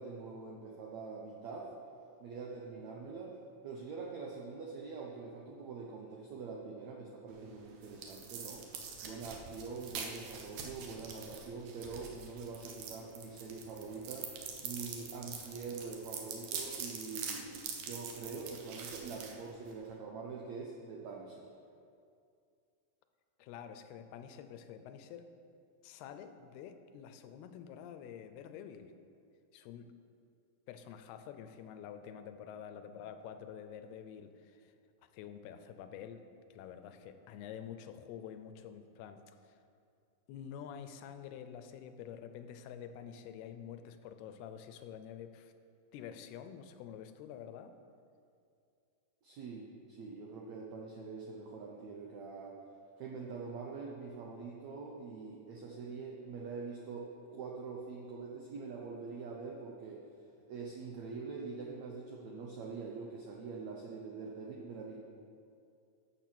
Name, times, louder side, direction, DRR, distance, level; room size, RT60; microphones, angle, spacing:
voice 1, 0.0-1.7 2.2-8.6 9.0-21.5 49.2-52.6 53.0-60.0 60.5-65.0, right 4 dB, 85° right, -1 dB, 1.6 m, -44 dB
sound 1, 7.3-20.0, right 6 dB, 65° right, 2.5 m, -45 dB
voice 2, 23.4-25.3 25.8-28.9 29.5-29.9 30.7-34.7 35.1-39.6 40.3-45.5 45.9-47.7, left 8 dB, 80° left, 9 dB, 2.6 m, -48 dB
14.0 x 7.4 x 6.0 m, 2.4 s
omnidirectional pair, 4.6 m